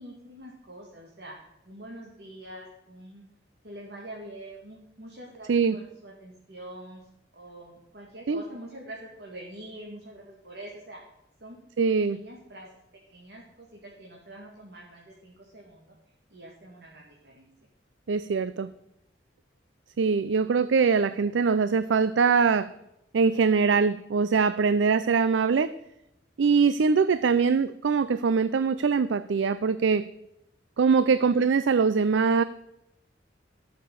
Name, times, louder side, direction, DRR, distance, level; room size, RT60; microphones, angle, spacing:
voice 1, 0.0-1.4 1.6-3.2 3.6-7.1 7.3-11.0 11.4-11.6 11.9-12.7 13.1-17.5 21.0-21.7 27.2-27.5 31.1-31.4, right 1 dB, 60° right, -2 dB, 2.4 m, -45 dB
voice 2, 11.8-12.2 18.1-18.7 20.0-22.7 23.1-25.7 26.4-30.0 30.8-32.4, right 5 dB, 85° right, 14 dB, 0.4 m, -22 dB
14.5 x 6.7 x 6.8 m, 0.85 s
head